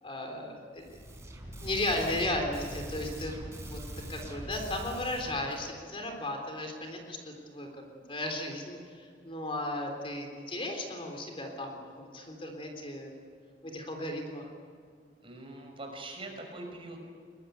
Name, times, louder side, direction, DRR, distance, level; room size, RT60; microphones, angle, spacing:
voice 1, 0.0-1.0 1.6-3.4 3.7-3.8 4.1-13.1 13.6-14.4, left 1 dB, 30° left, 3 dB, 3.6 m, -35 dB
sound 1, 0.8-5.7, equal, 15° right, 4.6 m, -42 dB
voice 2, 15.2-17.0, right 2 dB, 30° right, 2 dB, 5.6 m, -43 dB
22.5 x 21.0 x 9.3 m, 2.2 s
head